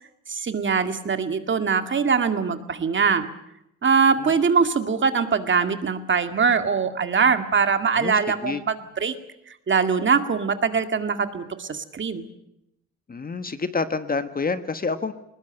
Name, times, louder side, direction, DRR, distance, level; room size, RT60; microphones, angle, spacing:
voice 1, 0.3-3.3 3.8-9.1 9.5-12.2, right 5 dB, 40° right, 8 dB, 2.1 m, -22 dB
voice 2, 7.9-8.6 13.1-15.1, left 4 dB, 30° left, 10 dB, 1.4 m, -28 dB
20.5 x 20.5 x 8.9 m, 0.84 s
cardioid pair, 90°, 30 cm